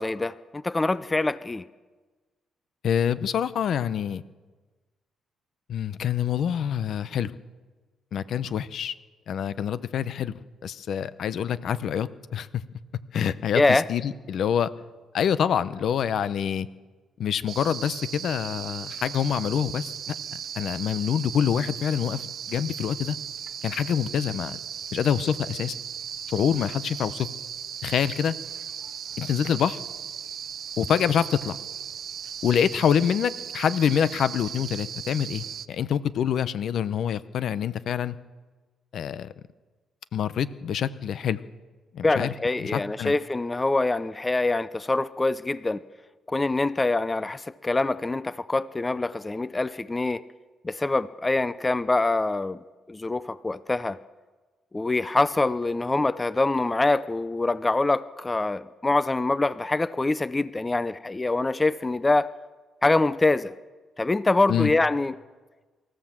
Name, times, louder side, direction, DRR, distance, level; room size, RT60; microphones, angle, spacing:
voice 1, 0.0-1.6 13.5-13.8 42.0-45.8 46.3-50.2 50.6-52.6 52.9-54.0 54.7-62.3 62.8-63.5 64.0-65.1, left 2 dB, 20° left, 16 dB, 0.6 m, -24 dB
voice 2, 2.8-4.2 5.7-7.3 8.1-8.9 9.3-10.3 10.6-12.6 13.1-14.7 15.1-16.7 17.2-20.1 20.5-23.2 23.6-24.6 24.9-25.7 26.3-27.3 27.8-28.3 29.2-29.8 30.8-31.6 32.4-38.2 38.9-39.3 40.1-41.4 41.9-42.3 42.6-43.1 64.5-64.7, left 8 dB, 65° left, 15 dB, 0.8 m, -26 dB
sound 1, 17.5-35.7, right 8 dB, 60° right, 0.7 m, -37 dB
24.5 x 14.0 x 7.5 m, 1.3 s
cardioid pair, 90°, 0 cm